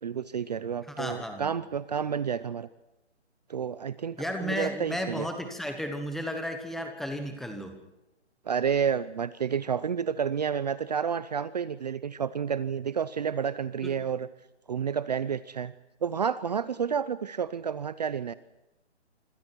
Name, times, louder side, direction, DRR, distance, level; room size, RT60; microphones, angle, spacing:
voice 1, 0.0-2.7 3.5-5.3 8.5-14.3 14.7-15.7 16.0-18.3, right 7 dB, 35° right, 16 dB, 0.7 m, -30 dB
voice 2, 0.9-1.5 4.2-7.7 13.8-13.9, equal, ahead, 6 dB, 1.1 m, -33 dB
26.0 x 26.0 x 4.6 m, 0.98 s
hypercardioid pair, 160°, 35 cm